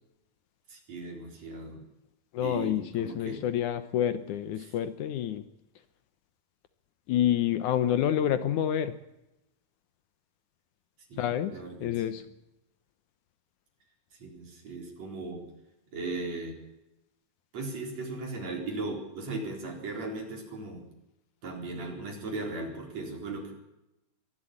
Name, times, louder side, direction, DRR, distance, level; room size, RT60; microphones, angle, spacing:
voice 1, 0.7-1.8 2.4-3.4 4.6-4.7 11.1-12.2 14.2-15.5 15.9-16.6 17.5-20.9 21.4-23.5, right 3 dB, 55° right, 2 dB, 5.3 m, -37 dB
voice 2, 2.3-5.4 7.1-8.9 11.2-11.6 11.8-12.2, left 10 dB, 75° left, 12 dB, 2.4 m, -28 dB
23.5 x 12.0 x 10.0 m, 0.91 s
omnidirectional pair, 3.7 m